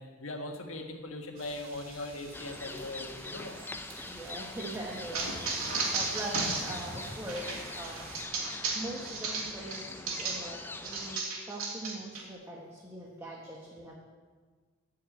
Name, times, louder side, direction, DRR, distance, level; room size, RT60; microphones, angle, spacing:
voice 1, 0.0-3.6, left 2 dB, 75° left, 3 dB, 1.6 m, -40 dB
sound 1, 1.3-8.2, right 3 dB, 70° right, 2.9 m, -50 dB
sound 2, 2.3-11.2, left 2 dB, 10° left, 0.4 m, -44 dB
voice 2, 4.0-8.0 8.7-13.9, right 1 dB, 15° right, -3 dB, 1.3 m, -42 dB
sound 3, 5.1-10.5 10.8-12.2, right 3 dB, 90° right, 2.6 m, -34 dB
13.0 x 5.8 x 9.1 m, 1.5 s
head